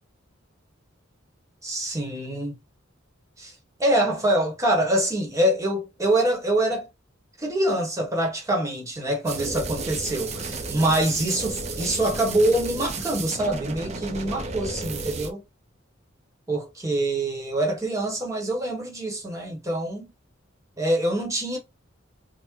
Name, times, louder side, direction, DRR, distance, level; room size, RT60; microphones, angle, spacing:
voice 1, 1.6-2.5 3.4-3.5 3.8-6.9 7.4-15.4 16.5-20.1 20.8-21.6, right 1 dB, 15° right, 1.0 m, -25 dB
sound 1, 9.3-15.3, right 3 dB, 35° right, 0.5 m, -33 dB
3.0 x 2.0 x 3.6 m
head